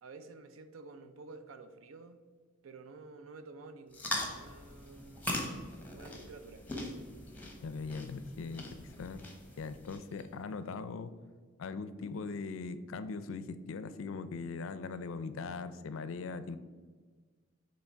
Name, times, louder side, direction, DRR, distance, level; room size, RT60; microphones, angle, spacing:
voice 1, 0.0-2.2 2.6-5.3 5.8-6.6, right 3 dB, 80° right, 9 dB, 0.5 m, -51 dB
sound 1, 3.9-10.2, left 1 dB, 10° left, 0.9 m, -41 dB
voice 2, 7.6-9.3 9.6-11.1 11.6-16.6, left 4 dB, 75° left, 13 dB, 0.4 m, -40 dB
7.0 x 3.1 x 4.4 m, 1.5 s
head